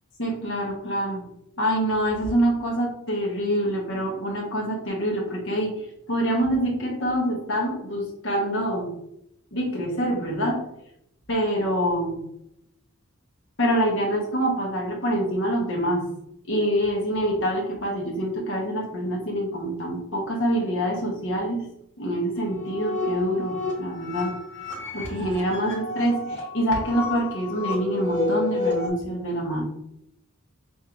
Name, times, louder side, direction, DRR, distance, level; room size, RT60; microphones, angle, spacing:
voice 1, 0.2-1.2 1.6-5.7 6.1-8.9 9.5-10.7 11.3-12.2 13.6-16.1 16.5-21.6 22.0-24.4 24.7-29.6, equal, 55° left, -1 dB, 1.1 m, -25 dB
sound 1, 22.4-28.9, left 3 dB, 10° left, 1.3 m, -31 dB
6.3 x 2.7 x 2.5 m, 0.77 s
head